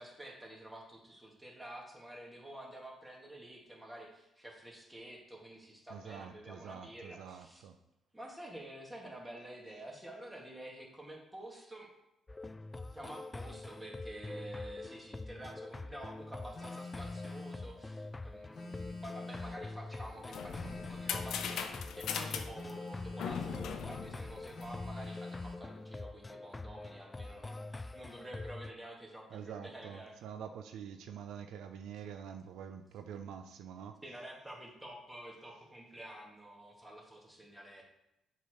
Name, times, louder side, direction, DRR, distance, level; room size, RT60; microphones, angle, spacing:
voice 1, 0.0-7.6 8.1-11.9 12.9-30.1 34.0-37.8, right 1 dB, 10° right, 2.0 m, -49 dB
voice 2, 5.9-7.8 29.3-34.0, right 8 dB, 85° right, 0.5 m, -46 dB
sound 1, 12.3-28.7, left 2 dB, 20° left, 0.4 m, -45 dB
Telephone, 16.5-17.7 18.5-19.7 20.5-21.7 22.5-23.7 24.5-25.7, left 3 dB, 50° left, 1.4 m, -45 dB
sound 2, 20.0-25.0, left 7 dB, 75° left, 0.7 m, -40 dB
6.9 x 4.7 x 5.0 m
cardioid pair, 90°, 0 cm